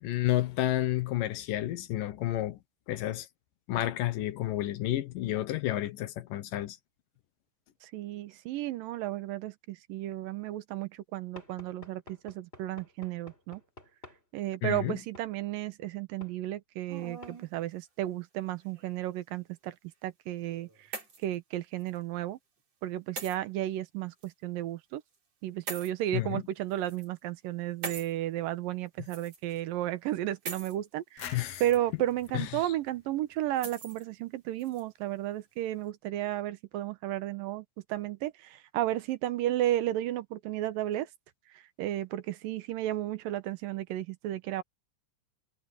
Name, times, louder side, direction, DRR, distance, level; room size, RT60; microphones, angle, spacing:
voice 1, 0.0-2.6 2.9-3.3 3.7-6.8 14.6-15.0 26.1-26.4 31.3-31.6 32.3-32.6, left 14 dB, 75° left, 2.7 m, -30 dB
voice 2, 7.8-13.6 14.3-19.8 20.0-20.9 21.2-22.4 22.8-25.0 25.4-41.1 41.5-44.6, right 13 dB, 85° right, 2.7 m, -33 dB
Knock / Wood, 11.4-14.2 15.1-15.3 16.2-16.4 17.2-17.4, left 2 dB, 15° left, 6.5 m, -51 dB
sound 1, 16.9-17.5 18.5-19.2 20.4-21.4 21.8-22.0 23.2-23.4 24.2-24.3 25.7-25.9 26.7-27.1 27.8-28.1 29.1-29.6 30.5-30.8 31.3-31.8 32.2-32.3 33.6-34.0 34.6-34.8, right 4 dB, 50° right, 5.6 m, -42 dB
sound 2, 31.2-33.9, left 10 dB, 60° left, 2.0 m, -48 dB
omnidirectional pair, 3.9 m